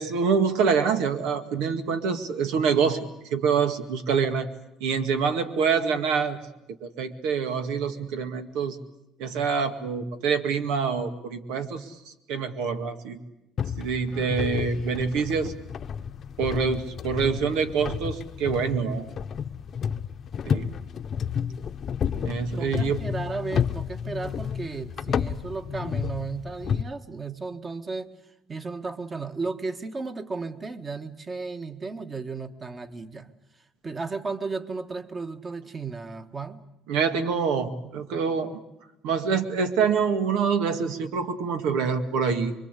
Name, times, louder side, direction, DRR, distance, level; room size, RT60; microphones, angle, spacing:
voice 1, 0.0-3.1 3.3-4.5 4.8-6.4 6.8-8.8 9.2-11.9 12.3-13.2 13.8-15.5 16.4-19.1 20.4-20.7 22.2-23.0 36.9-38.6 39.0-42.5, right 6 dB, 90° right, 8 dB, 2.1 m, -26 dB
sound 1, 13.6-26.8, left 7 dB, 45° left, 0.9 m, -31 dB
voice 2, 22.6-28.1 28.5-33.3 33.8-36.6, right 4 dB, 25° right, 8 dB, 1.7 m, -34 dB
26.0 x 23.0 x 8.4 m, 0.92 s
cardioid pair, 115°, 0 cm